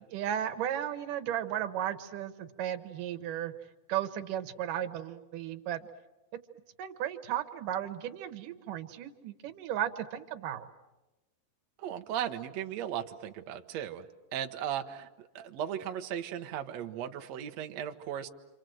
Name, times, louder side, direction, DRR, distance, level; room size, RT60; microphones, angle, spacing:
voice 1, 0.1-3.5 3.9-5.9 6.8-10.7, right 11 dB, 65° right, 9 dB, 2.3 m, -35 dB
voice 2, 11.8-14.0 14.3-18.3, right 10 dB, 90° right, 5 dB, 1.5 m, -36 dB
28.5 x 26.5 x 7.8 m, 1.1 s
omnidirectional pair, 4.7 m